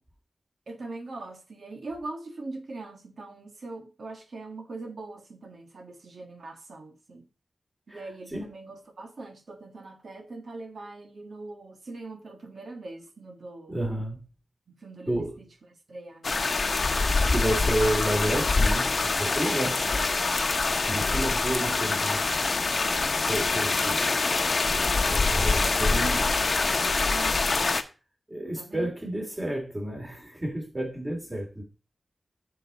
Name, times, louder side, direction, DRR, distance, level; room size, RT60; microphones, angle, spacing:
voice 1, 0.7-7.2 7.9-13.8 14.7-16.5 19.8-20.0 25.5-27.4 28.6-28.9, right 2 dB, 75° right, 1.7 m, -42 dB
voice 2, 13.7-14.2 15.1-15.4 17.3-19.8 20.9-22.2 23.3-24.2 25.0-26.3 28.3-31.6, right 1 dB, 25° right, 3.3 m, -30 dB
sound 1, 16.2-27.8, left 3 dB, 55° left, 0.8 m, -25 dB
7.3 x 6.7 x 4.2 m
wide cardioid pair, 70°, 0 cm